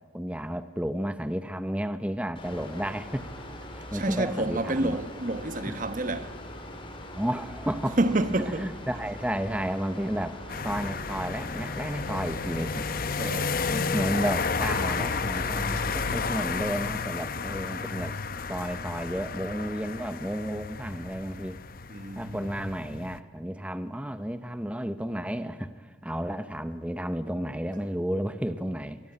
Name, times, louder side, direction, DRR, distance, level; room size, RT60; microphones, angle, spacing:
voice 1, 0.1-3.3 3.7-5.0 5.7-5.8 7.1-8.0 8.6-12.9 13.7-18.2 18.5-21.6 22.2-29.0, equal, 5° right, 1.0 m, -32 dB
Mechanical fan, 2.4-16.5, left 1 dB, 30° left, 4.4 m, -42 dB
voice 2, 3.9-6.4 8.0-8.8 13.2-13.7 21.9-22.5, right 2 dB, 45° right, 1.2 m, -29 dB
sound 1, 10.5-23.2, left 4 dB, 50° left, 0.9 m, -32 dB
28.5 x 24.0 x 8.7 m
head